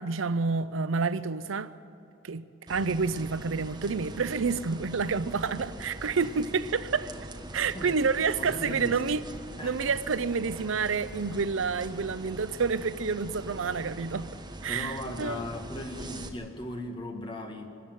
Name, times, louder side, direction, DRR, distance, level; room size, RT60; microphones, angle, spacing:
voice 1, 0.0-1.7 2.2-7.1 7.5-9.2 9.6-14.3 14.6-15.4, right 5 dB, 75° right, 0.6 m, -29 dB
sound 1, 2.7-16.3, right 1 dB, 20° right, 1.3 m, -43 dB
voice 2, 8.4-9.0 9.6-9.8 14.7-17.7, left 1 dB, 25° left, 1.9 m, -37 dB
25.0 x 13.5 x 9.3 m
head